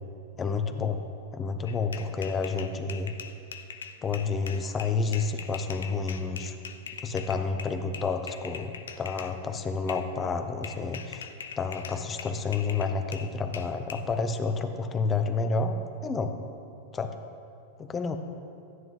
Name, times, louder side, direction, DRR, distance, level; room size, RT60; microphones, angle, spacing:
voice 1, 0.4-1.0 1.3-3.1 4.0-6.5 7.0-11.3 11.6-15.8 16.0-16.3 16.9-17.2 17.8-18.2, left 4 dB, 25° left, 7 dB, 0.9 m, -30 dB
sound 1, 1.7-9.4 9.9-10.1 10.6-14.0, left 6 dB, 80° left, 0.6 m, -42 dB
13.5 x 9.6 x 3.8 m, 2.7 s
hypercardioid pair, 105°, 0 cm